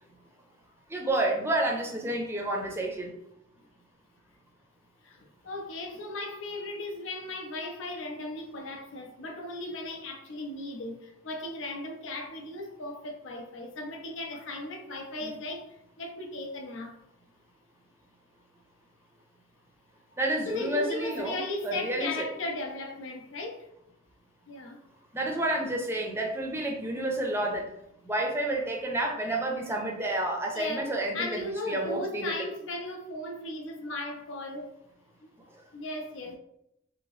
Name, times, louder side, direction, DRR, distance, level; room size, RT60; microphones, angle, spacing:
voice 1, 0.9-3.1 15.2-15.3 20.2-22.3 25.1-27.7 28.0-32.4, right 1 dB, 15° right, 0.5 m, -30 dB
voice 2, 5.0-16.9 20.5-23.7 24.5-24.8 30.5-34.7 35.2-35.3 35.7-36.4, left 2 dB, 80° left, 0.5 m, -37 dB
2.8 x 2.7 x 3.0 m
head